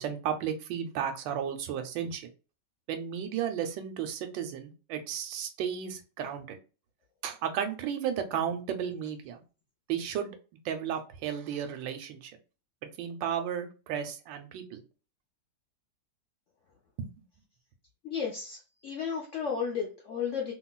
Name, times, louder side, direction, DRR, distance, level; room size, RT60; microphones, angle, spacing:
voice 1, 0.0-2.3 2.9-6.6 7.2-9.4 9.9-10.4 10.6-12.3 13.0-14.8 17.0-17.1, right 8 dB, 85° right, 7 dB, 1.3 m, -33 dB
voice 2, 18.0-20.5, left 6 dB, 70° left, -1 dB, 0.7 m, -33 dB
3.0 x 2.6 x 2.2 m, 0.33 s
omnidirectional pair, 2.0 m